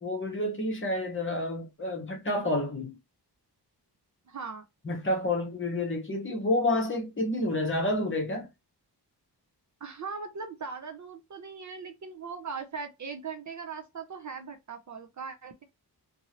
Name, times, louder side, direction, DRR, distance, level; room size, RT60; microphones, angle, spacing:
voice 1, 0.0-3.0 4.9-8.5, left 1 dB, 30° left, 0.8 m, -29 dB
voice 2, 4.3-4.6 9.8-15.6, right 5 dB, 45° right, 0.5 m, -39 dB
2.7 x 2.6 x 2.8 m
wide cardioid pair, 180°, 42 cm